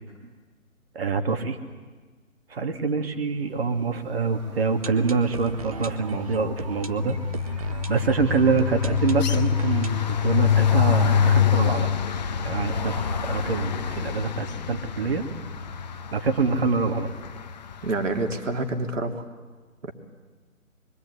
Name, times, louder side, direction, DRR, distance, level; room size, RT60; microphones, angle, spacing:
voice 1, 0.9-1.6 2.5-7.2 7.5-11.9 12.4-15.3 16.1-17.1, right 4 dB, 45° right, 7 dB, 2.7 m, -25 dB
sound 1, 4.3-12.1 12.4-12.5 12.7-12.8 13.3-13.4, right 5 dB, 25° right, 0.9 m, -39 dB
sound 2, 4.5-4.9 5.2-18.3, left 8 dB, 30° left, 1.2 m, -26 dB
voice 2, 17.8-19.3 19.8-19.9, right 2 dB, 60° right, 5 dB, 3.4 m, -28 dB
25.5 x 23.5 x 9.8 m, 1.4 s
figure-of-eight pair, 150°, 42 cm